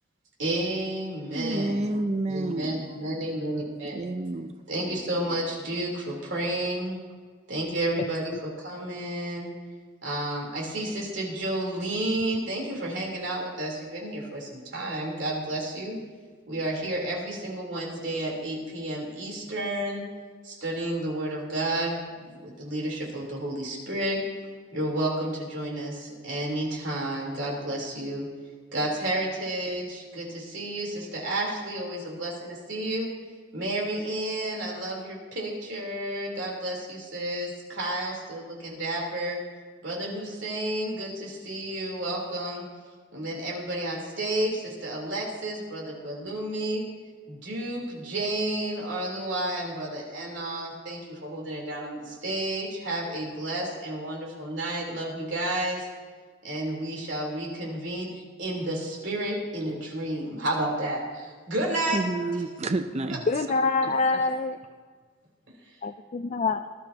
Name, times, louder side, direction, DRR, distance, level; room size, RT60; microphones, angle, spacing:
voice 1, 0.4-1.9 2.3-4.0 4.7-7.0 7.5-9.5 10.0-16.0 16.5-20.0 20.4-22.1 22.4-24.2 24.7-28.3 28.7-33.1 33.5-39.4 39.8-42.7 43.1-46.8 47.3-55.9 56.4-62.0 63.1-63.2, right 1 dB, 70° right, -2 dB, 3.7 m, -31 dB
voice 2, 1.3-2.9 3.9-4.5 61.9-63.2, right 2 dB, 35° right, 7 dB, 0.6 m, -29 dB
voice 3, 63.3-64.6 65.8-66.6, left 3 dB, 40° left, 8 dB, 0.4 m, -25 dB
19.5 x 12.0 x 2.9 m, 1.5 s
head